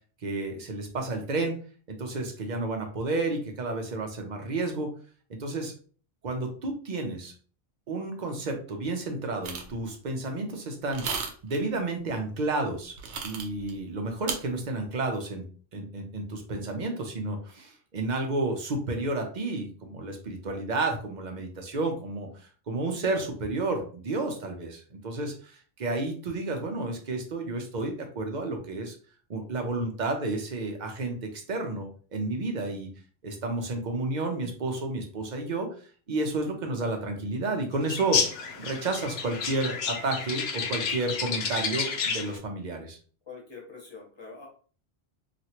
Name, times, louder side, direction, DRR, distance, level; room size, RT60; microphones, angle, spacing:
voice 1, 0.2-1.5 1.9-4.9 5.3-5.8 6.2-7.3 7.9-12.9 13.2-22.3 22.7-28.9 29.3-32.9 33.2-35.7 36.1-38.2 38.6-43.0, right 2 dB, 50° right, 3 dB, 0.7 m, -31 dB
sound 1, 9.4-9.8 10.9-11.6 13.0-13.7 14.3-14.4, right 5 dB, 85° right, 0.9 m, -33 dB
sound 2, 37.9-42.4, left 6 dB, 75° left, 0.8 m, -30 dB
voice 2, 43.3-44.5, left 4 dB, 25° left, -2 dB, 1.1 m, -44 dB
3.0 x 2.5 x 2.8 m, 0.41 s
omnidirectional pair, 1.1 m